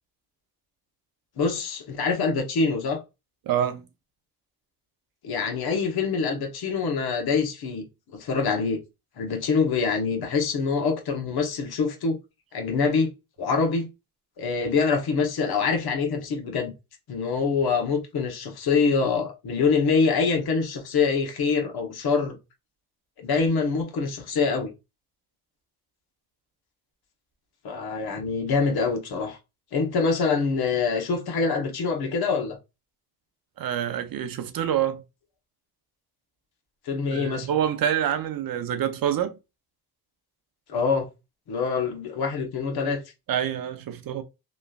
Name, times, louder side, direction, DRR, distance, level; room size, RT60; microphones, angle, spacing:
voice 1, 1.4-3.0 5.2-7.9 8.1-8.8 9.2-12.2 12.5-13.1 13.4-13.9 14.4-16.7 17.1-22.4 23.2-24.7 27.6-29.4 29.7-32.6 36.9-37.5 40.7-41.1 41.5-43.0, left 5 dB, 70° left, 1.0 m, -25 dB
voice 2, 3.5-3.9 33.6-35.0 37.1-39.4 43.3-44.2, right 10 dB, 60° right, 0.6 m, -26 dB
3.0 x 2.4 x 2.3 m
supercardioid pair, 55°, 40 cm